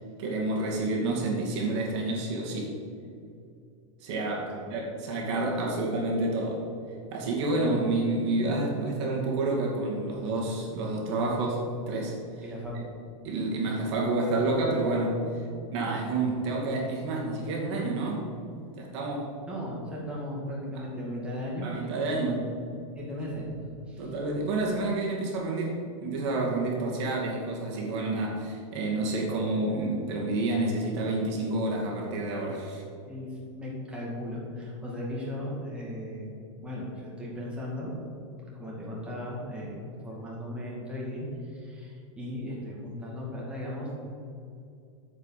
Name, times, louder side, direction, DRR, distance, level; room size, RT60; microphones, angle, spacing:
voice 1, 0.2-2.7 4.0-6.6 7.1-12.4 13.2-15.2 15.7-19.3 21.6-22.4 24.0-32.8, right 2 dB, 55° right, -2 dB, 2.4 m, -29 dB
voice 2, 4.5-4.8 12.4-12.9 19.4-22.5 23.0-24.1 33.1-36.3 36.6-37.9 38.5-43.9, left 1 dB, 5° right, -5 dB, 2.3 m, -37 dB
9.1 x 5.7 x 7.4 m, 2.4 s
supercardioid pair, 145°, 17 cm